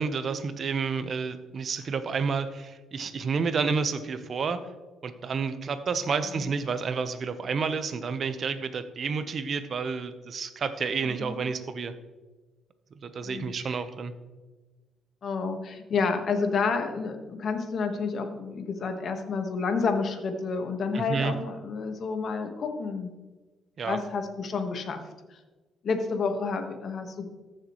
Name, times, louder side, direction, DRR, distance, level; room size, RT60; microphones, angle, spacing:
voice 1, 0.0-4.6 5.0-11.9 13.0-14.1 20.9-21.3 23.8-24.0, right 5 dB, 50° right, 11 dB, 0.9 m, -30 dB
voice 2, 11.0-11.4 13.2-13.8 15.2-23.1 23.8-25.0 25.3-25.4 25.8-27.3, left 4 dB, 55° left, 6 dB, 1.4 m, -30 dB
14.5 x 6.6 x 3.1 m, 1.2 s
cardioid pair, 90°, 0 cm